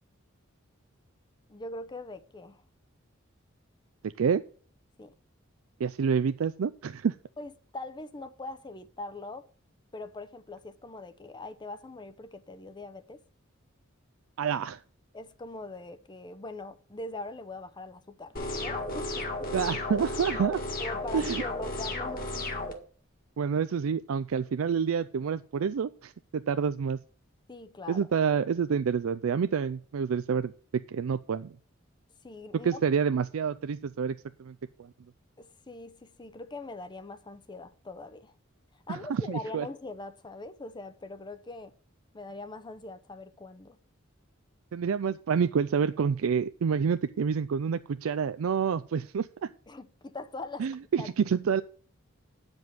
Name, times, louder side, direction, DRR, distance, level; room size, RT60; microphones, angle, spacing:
voice 1, 1.5-2.6 5.0-5.1 7.4-9.5 9.9-13.2 15.1-19.5 20.8-22.6 27.5-28.1 32.2-32.7 35.4-38.3 38.9-41.7 42.1-43.8 49.7-50.7 51.0-51.1, left 2 dB, 20° left, 0.6 m, -42 dB
voice 2, 5.8-7.2 14.4-14.8 19.5-20.6 21.1-21.4 23.4-27.0 27.9-30.5 30.9-31.5 32.6-34.5 38.9-39.7 44.7-49.5 50.6-51.6, right 6 dB, 85° right, 0.4 m, -28 dB
sound 1, 18.4-22.7, left 2 dB, 45° left, 1.9 m, -34 dB
9.5 x 5.3 x 7.5 m
head